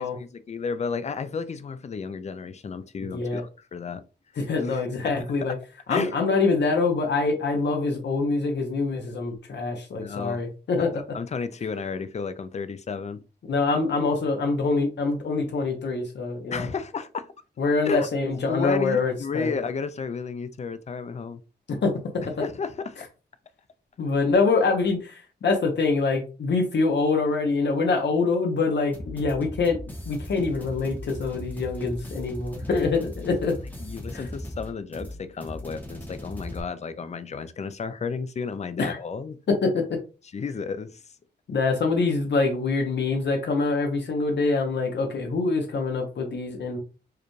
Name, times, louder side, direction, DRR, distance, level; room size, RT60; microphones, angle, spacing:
voice 1, 0.0-4.0 4.7-4.8 5.2-5.3 5.9-6.1 10.0-10.4 10.8-10.9 11.1-13.2 16.5-17.3 17.8-18.1 18.5-21.4 22.4-23.0 33.8-39.4 40.3-41.0, left 5 dB, 40° left, 0.4 m, -32 dB
voice 2, 3.0-3.4 4.4-5.5 5.9-11.0 13.5-16.7 17.6-19.5 21.7-21.9 24.0-29.8 30.1-33.6 34.1-34.3 38.8-39.0 39.5-40.0 41.5-46.8, left 3 dB, 75° left, 0.8 m, -25 dB
sound 1, 28.9-36.6, left 1 dB, 10° left, 0.8 m, -38 dB
4.8 x 2.2 x 3.1 m
wide cardioid pair, 165°, 18 cm